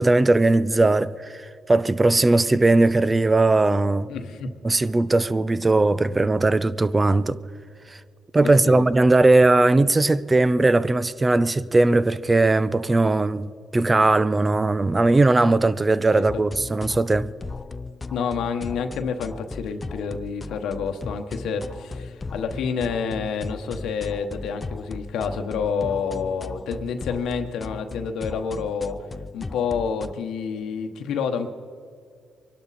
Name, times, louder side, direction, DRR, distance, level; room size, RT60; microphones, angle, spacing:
voice 1, 0.0-4.1 4.6-7.4 7.9-8.0 8.3-17.3, right 2 dB, 20° right, 0.6 m, -19 dB
voice 2, 4.1-4.5 8.4-8.8 18.1-29.0 29.3-31.5, left 6 dB, 80° left, 1.1 m, -28 dB
sound 1, 16.3-30.1, left 3 dB, 25° left, 0.5 m, -37 dB
23.5 x 12.0 x 4.2 m
cardioid pair, 90°, 0 cm